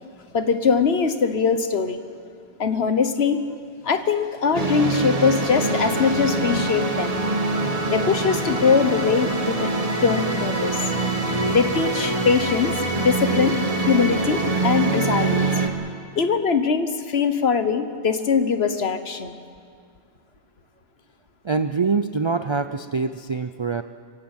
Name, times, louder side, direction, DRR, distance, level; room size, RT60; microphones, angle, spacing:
voice 1, 0.3-2.0 2.6-3.4 3.8-7.2 7.9-10.8 11.5-13.6 13.9-15.5 16.2-19.4, left 5 dB, 55° left, 10 dB, 1.4 m, -22 dB
sound 1, 4.5-15.7, right 3 dB, 30° right, 1.7 m, -24 dB
voice 2, 21.4-23.8, right 4 dB, 45° right, 10 dB, 0.3 m, -24 dB
25.0 x 15.5 x 9.0 m, 2.2 s
omnidirectional pair, 1.3 m